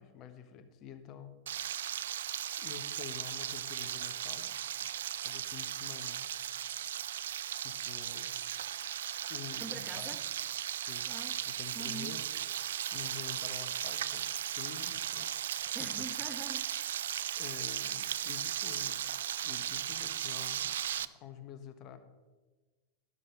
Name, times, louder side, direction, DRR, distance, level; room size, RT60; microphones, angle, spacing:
voice 1, 0.0-1.7 2.6-4.5 4.8-4.9 5.2-6.2 7.6-8.3 9.3-10.2 10.8-11.1 11.5-12.2 12.9-15.4 15.8-15.9 17.4-19.1 19.4-22.0, left 9 dB, 35° left, 9 dB, 1.3 m, -48 dB
Frying (food), 1.5-21.0, right 10 dB, 60° right, 0.4 m, -37 dB
voice 2, 9.6-10.2 11.1-11.4 11.7-12.2 15.7-17.0, right 3 dB, 10° right, 8 dB, 1.1 m, -45 dB
12.5 x 12.0 x 4.0 m, 1.3 s
figure-of-eight pair, 90°, 0 cm